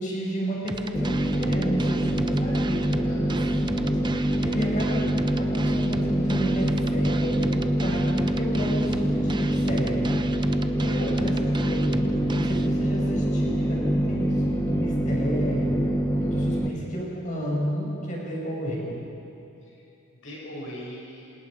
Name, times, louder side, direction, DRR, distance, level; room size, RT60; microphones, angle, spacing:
voice 1, 0.0-5.0 5.4-10.2 10.8-11.4 11.7-15.8 16.2-19.0, equal, 35° left, -3 dB, 6.5 m, -31 dB
sound 1, 0.7-12.7, right 3 dB, 20° right, 0.7 m, -37 dB
sound 2, 0.9-16.7, right 1 dB, 15° left, 1.3 m, -25 dB
voice 2, 3.0-3.3 10.8-11.2 19.6-19.8 20.1-21.3, left 1 dB, 65° left, -5 dB, 7.2 m, -39 dB
27.5 x 27.5 x 5.2 m, 2.8 s
head